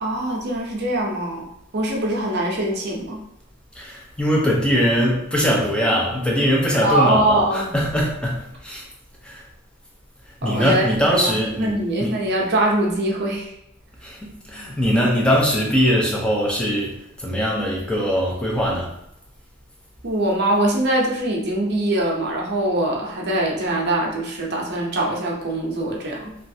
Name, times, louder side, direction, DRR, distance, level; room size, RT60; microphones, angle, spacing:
voice 1, 0.0-1.5 1.7-3.2 6.8-7.7 10.4-10.9 11.2-11.3 11.6-13.5 20.0-26.3, right 1 dB, 50° right, -1 dB, 0.6 m, -22 dB
voice 2, 3.8-8.9 9.2-9.5 10.4-12.2 14.0-18.9, equal, 5° left, -2 dB, 0.5 m, -21 dB
3.0 x 2.4 x 2.7 m, 0.82 s
head